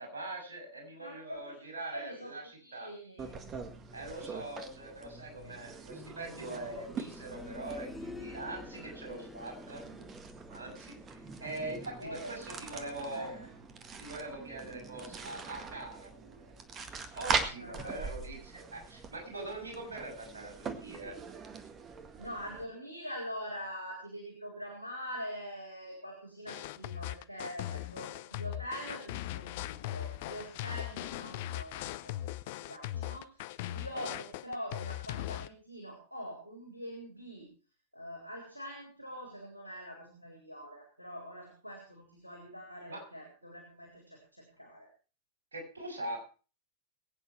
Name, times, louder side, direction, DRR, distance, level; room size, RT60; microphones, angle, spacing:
voice 1, 0.0-2.9 3.9-9.8 10.5-13.3 14.0-16.5 17.1-21.1 33.9-34.1 42.9-43.0 45.5-46.2, right 2 dB, 70° right, 0 dB, 7.2 m, -42 dB
voice 2, 1.0-1.6 1.9-2.3 2.6-3.4 12.0-13.5 17.2-18.0 22.2-32.3 32.7-37.5 37.9-44.9, equal, 85° right, 2 dB, 4.1 m, -44 dB
sound 1, 3.2-22.6, right 5 dB, 25° right, 1.7 m, -42 dB
sound 2, 5.9-16.7 18.1-18.2, left 2 dB, 5° left, 1.9 m, -51 dB
sound 3, 26.5-35.5, left 14 dB, 50° left, 0.7 m, -39 dB
22.0 x 8.9 x 4.7 m, 0.36 s
figure-of-eight pair, 90°, 0 cm